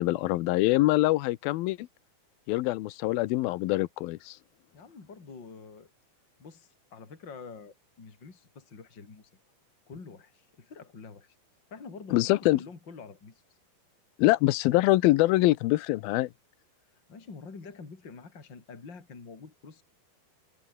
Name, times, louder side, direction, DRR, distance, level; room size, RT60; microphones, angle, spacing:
voice 1, 0.0-1.9 2.5-4.4 12.1-12.6 14.2-16.3, left 18 dB, 80° left, 2.6 m, -24 dB
voice 2, 4.7-5.9 6.4-9.3 9.9-11.4 11.7-13.4 17.1-19.8, left 4 dB, 30° left, 4.2 m, -47 dB
open air
omnidirectional pair, 4.3 m